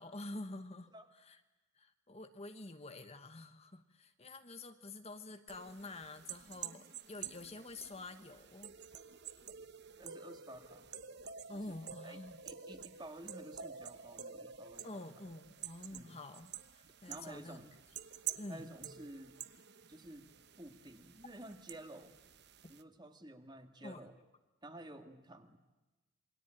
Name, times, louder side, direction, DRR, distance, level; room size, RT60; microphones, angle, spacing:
voice 1, 0.0-1.4 1.7-9.0 11.5-12.4 14.8-17.6 18.4-18.8 23.8-24.0, left 2 dB, 30° left, 8 dB, 1.2 m, -48 dB
sound 1, 5.5-22.8, right 8 dB, 50° right, 1.1 m, -49 dB
voice 2, 10.0-10.9 11.5-15.0 15.9-16.2 17.1-17.7 18.5-19.4 19.9-20.3 20.6-22.2 22.7-24.2 24.6-25.6, right 1 dB, 20° right, 7 dB, 2.0 m, -52 dB
28.0 x 23.0 x 9.0 m, 1.1 s
head